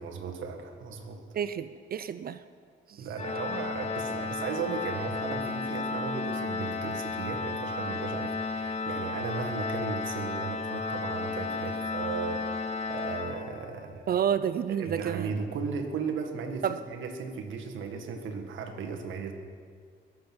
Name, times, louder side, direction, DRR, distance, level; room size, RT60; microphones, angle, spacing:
voice 1, 0.0-1.2 3.0-14.2 14.7-19.3, right 5 dB, 75° right, 3 dB, 1.7 m, -36 dB
voice 2, 1.3-2.4 14.1-15.3 16.6-16.8, right 8 dB, 50° right, 13 dB, 0.6 m, -29 dB
Organ, 3.2-13.9, left 4 dB, 35° left, 1.1 m, -33 dB
21.5 x 7.8 x 6.1 m, 2.1 s
cardioid pair, 90°, 20 cm